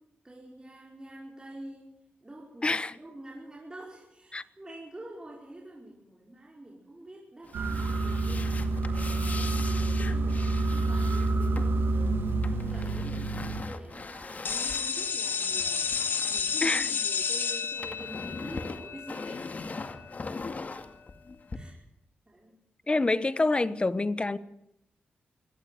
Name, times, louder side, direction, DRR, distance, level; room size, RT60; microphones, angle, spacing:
voice 1, 0.2-1.9 2.2-8.6 9.0-15.9 16.3-19.4 20.7-20.8 21.5-21.8 22.3-22.6 22.8-23.0, right 1 dB, 20° right, 5.4 m, -47 dB
voice 2, 2.6-2.9 4.3-4.4 16.6-16.9 22.9-24.4, left 2 dB, 30° left, 1.2 m, -26 dB
sound 1, 7.4-17.2 17.5-21.6, left 3 dB, 45° left, 2.2 m, -41 dB
sound 2, 7.5-13.6, right 2 dB, 90° right, 2.3 m, -28 dB
sound 3, 14.4-20.1, left 6 dB, 65° left, 1.9 m, -31 dB
22.5 x 17.5 x 9.5 m
cardioid pair, 75°, 4 cm